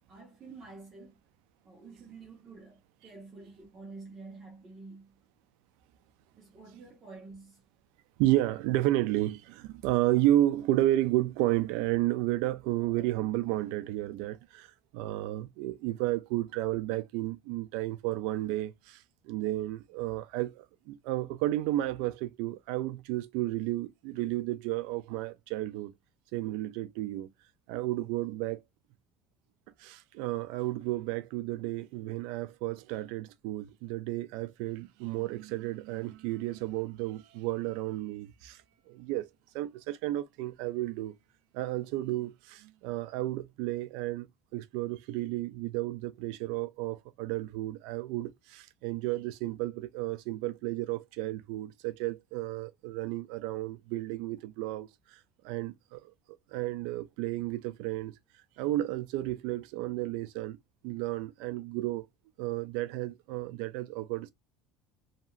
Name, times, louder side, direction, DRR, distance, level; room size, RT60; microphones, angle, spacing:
voice 1, 0.1-1.2 1.6-5.2 6.4-7.6, right 3 dB, 30° right, 0.9 m, -49 dB
voice 2, 8.2-25.9 26.3-27.3 27.7-28.6 29.8-38.6 38.9-39.3 39.5-41.1 41.5-44.3 44.5-55.2 55.4-56.1 56.5-58.1 58.6-60.6 60.8-62.1 62.4-64.3, right 15 dB, 80° right, 0.3 m, -32 dB
2.8 x 2.7 x 2.3 m
cardioid pair, 150°, 0 cm